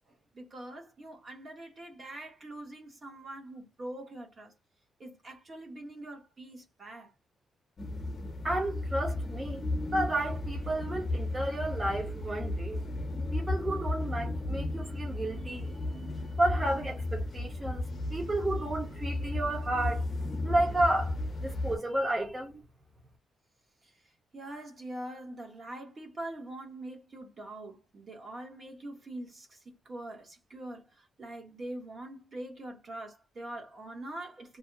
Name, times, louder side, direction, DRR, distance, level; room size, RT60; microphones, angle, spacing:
voice 1, 0.1-4.5 5.0-7.1 23.8-34.6, right 1 dB, 40° right, 1.1 m, -44 dB
sound 1, 7.8-21.8, left 2 dB, 35° left, 0.8 m, -34 dB
voice 2, 8.4-12.8 13.3-15.7 16.4-20.1 20.4-22.6, right 1 dB, 20° right, 0.8 m, -32 dB
2.6 x 2.1 x 2.6 m
cardioid pair, 120°, 0 cm